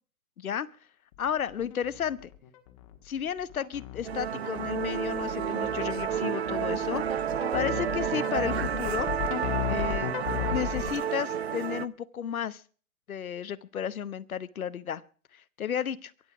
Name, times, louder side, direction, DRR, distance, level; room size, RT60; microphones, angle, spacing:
voice 1, 0.4-0.7 1.2-2.3 3.0-7.1 7.5-9.1 9.7-10.1 10.5-12.6 13.1-15.0 15.3-16.1, left 8 dB, 70° left, 17 dB, 1.0 m, -33 dB
sound 1, 1.1-10.9, left 12 dB, 25° left, 1.5 m, -35 dB
Musical instrument, 4.0-11.9, right 9 dB, 45° right, 0.6 m, -30 dB
23.5 x 8.2 x 4.9 m, 0.41 s
hypercardioid pair, 160°, 44 cm